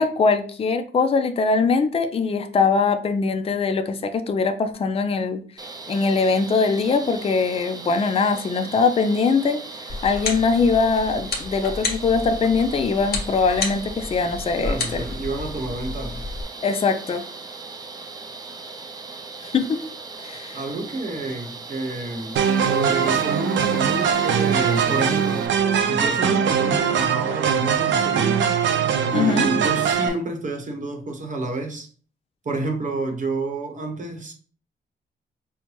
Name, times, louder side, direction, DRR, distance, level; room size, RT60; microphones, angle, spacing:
voice 1, 0.0-5.4 5.9-15.0 16.6-17.2 19.4-19.8 20.2-20.6 29.1-29.5, left 4 dB, 30° left, 0.4 m, -22 dB
sound 1, 5.6-25.5, right 3 dB, 20° right, 0.5 m, -38 dB
sound 2, 9.9-16.4, left 3 dB, 55° left, 1.2 m, -31 dB
voice 2, 14.6-16.2 20.5-22.4 22.7-25.5 25.9-28.8 29.1-31.9 32.4-34.3, right 2 dB, 40° right, 0.9 m, -29 dB
sound 3, 22.4-30.1, right 7 dB, 80° right, 0.5 m, -21 dB
5.4 x 2.1 x 3.0 m
cardioid pair, 115°, 19 cm